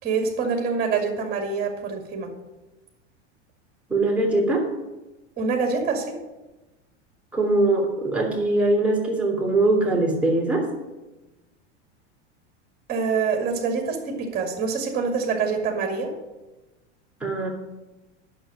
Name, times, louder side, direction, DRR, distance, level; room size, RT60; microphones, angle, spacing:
voice 1, 0.0-2.3 5.4-6.2 12.9-16.1, right 5 dB, 25° right, 2 dB, 2.2 m, -25 dB
voice 2, 3.9-4.7 7.3-10.7 17.2-17.5, right 2 dB, 5° right, -3 dB, 3.0 m, -22 dB
9.0 x 6.6 x 6.4 m, 1.1 s
hypercardioid pair, 110°, 36 cm